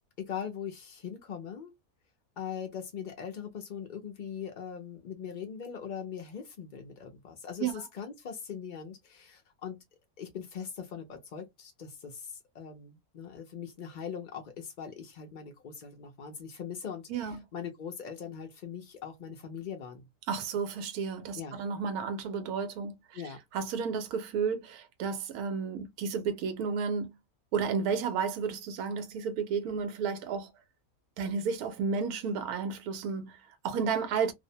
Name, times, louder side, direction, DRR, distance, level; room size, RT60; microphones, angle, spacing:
voice 1, 0.2-1.7 2.4-9.8 10.2-20.1 21.4-21.6 23.1-23.4, left 7 dB, 70° left, 0.4 m, -41 dB
voice 2, 20.3-27.1 27.5-30.5 31.2-34.3, right 6 dB, 85° right, 1.1 m, -32 dB
2.6 x 2.0 x 2.6 m
omnidirectional pair, 1.5 m